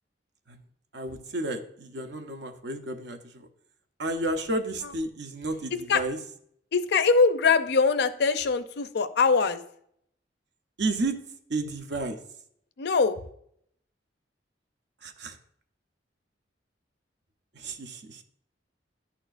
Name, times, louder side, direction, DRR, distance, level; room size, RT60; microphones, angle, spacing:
voice 1, 0.9-3.5 4.0-6.2 10.8-11.2 11.5-12.2 15.0-15.4 17.5-18.2, right 2 dB, 65° right, 6 dB, 0.8 m, -32 dB
voice 2, 5.7-6.0 6.7-9.6 12.8-13.2, left 4 dB, 65° left, 11 dB, 0.5 m, -23 dB
11.5 x 4.3 x 2.5 m, 0.69 s
head